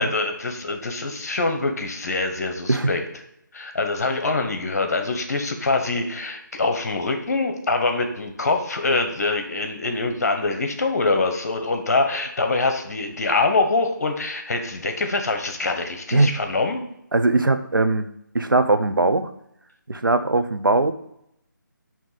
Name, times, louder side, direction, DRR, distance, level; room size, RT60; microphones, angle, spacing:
voice 1, 0.0-3.0 3.5-16.8, left 3 dB, 50° left, 5 dB, 1.1 m, -24 dB
voice 2, 17.1-18.1 18.3-19.3 19.9-20.9, right 2 dB, 80° right, 9 dB, 0.8 m, -20 dB
8.9 x 3.0 x 4.1 m, 0.76 s
figure-of-eight pair, 155°, 11 cm